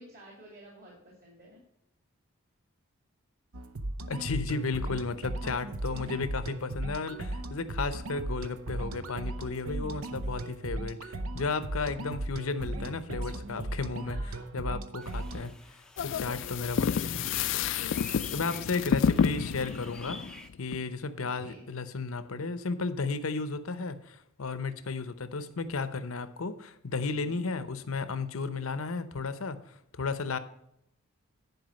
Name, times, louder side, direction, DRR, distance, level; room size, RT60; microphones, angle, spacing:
voice 1, 0.0-1.6 14.1-14.5 18.7-19.0 21.4-21.6 27.2-27.6, right 1 dB, 45° right, -2 dB, 2.5 m, -52 dB
sound 1, 3.5-15.5, right 1 dB, 80° right, 0.8 m, -37 dB
voice 2, 4.1-14.2 14.5-15.5 16.0-17.4 18.3-20.2 20.6-29.6 29.9-30.4, left 4 dB, 75° left, 12 dB, 0.8 m, -34 dB
sound 2, 15.0-20.5, left 1 dB, 5° left, 0.5 m, -49 dB
sound 3, 16.0-20.8, left 6 dB, 55° left, 0.3 m, -29 dB
10.5 x 4.8 x 6.3 m, 0.79 s
head